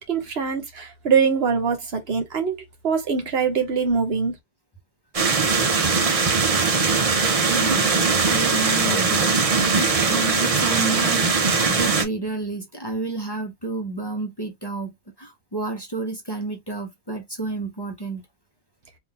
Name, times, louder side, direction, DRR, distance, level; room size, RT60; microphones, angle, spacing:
voice 1, 0.0-4.3, right 6 dB, 65° right, 1.2 m, -23 dB
sound 1, 5.1-12.0, right 4 dB, 40° right, 0.7 m, -20 dB
voice 2, 7.4-7.9 8.3-18.2, right 3 dB, 25° left, 0.8 m, -30 dB
3.7 x 2.6 x 2.9 m
omnidirectional pair, 1.1 m